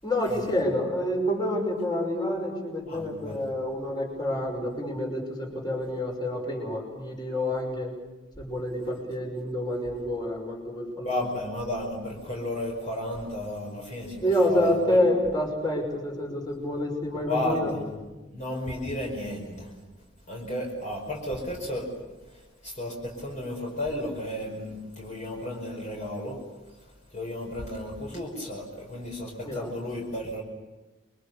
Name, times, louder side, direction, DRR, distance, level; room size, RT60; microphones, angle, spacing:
voice 1, 0.0-7.9 8.4-11.1 14.2-17.7 29.4-29.7, left 1 dB, 20° left, 1 dB, 5.8 m, -28 dB
voice 2, 2.9-3.4 11.0-15.0 17.2-17.8 18.3-19.7 20.3-21.9 22.3-26.4 27.1-30.4, left 1 dB, 35° left, -1 dB, 5.0 m, -33 dB
28.5 x 23.5 x 6.9 m, 1.2 s
head